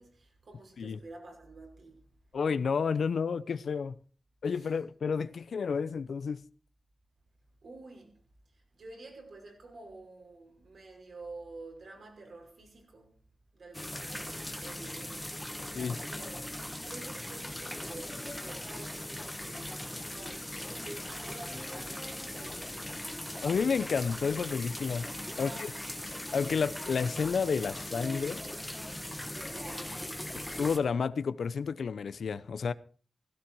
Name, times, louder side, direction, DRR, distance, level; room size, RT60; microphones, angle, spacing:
voice 1, 0.0-2.0 4.6-4.7 7.6-8.1 8.7-13.1 13.5-15.4 15.8-16.5 16.8-22.8 25.3-25.8 29.3-29.9 30.3-30.5, right 2 dB, 65° right, 5.7 m, -49 dB
voice 2, 2.3-3.9 4.4-6.4 15.7-15.9 23.4-25.1 25.4-25.7 26.3-28.4 30.3-32.7, left 5 dB, 85° left, 0.8 m, -30 dB
sound 1, 13.7-30.8, left 1 dB, 5° left, 1.4 m, -39 dB
16.0 x 16.0 x 4.7 m
wide cardioid pair, 155°, 0 cm